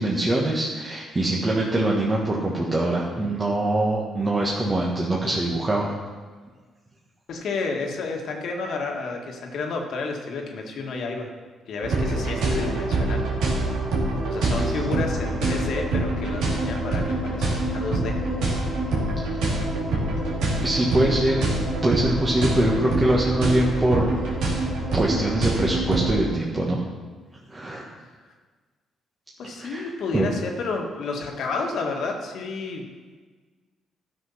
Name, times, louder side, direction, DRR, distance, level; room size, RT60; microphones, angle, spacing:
voice 1, 0.0-5.9 20.6-21.4 21.8-24.1 24.9-26.8 27.5-27.8 29.6-29.8 30.1-30.3, right 1 dB, 25° right, -4 dB, 1.5 m, -23 dB
voice 2, 7.3-11.3 11.7-13.2 14.3-18.2 29.4-32.8, left 3 dB, 70° left, 2 dB, 1.7 m, -30 dB
sound 1, 11.8-26.2, right 2 dB, 85° right, 2.6 m, -25 dB
12.5 x 6.2 x 5.7 m, 1.4 s
cardioid pair, 90°, 0 cm